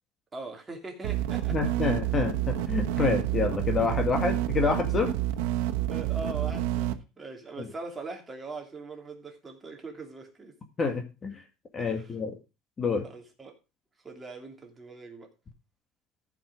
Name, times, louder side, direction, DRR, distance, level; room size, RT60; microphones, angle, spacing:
voice 1, 0.3-1.6 5.9-10.6 11.8-12.1 13.0-13.6 14.0-15.3, right 3 dB, 15° right, 2.8 m, -41 dB
sound 1, 1.0-6.9, right 13 dB, 90° right, 1.2 m, -29 dB
voice 2, 1.5-5.1 7.6-7.7 10.8-11.4 11.7-12.3 12.8-13.0, left 4 dB, 30° left, 1.9 m, -28 dB
14.0 x 6.0 x 4.8 m
cardioid pair, 125°, 0 cm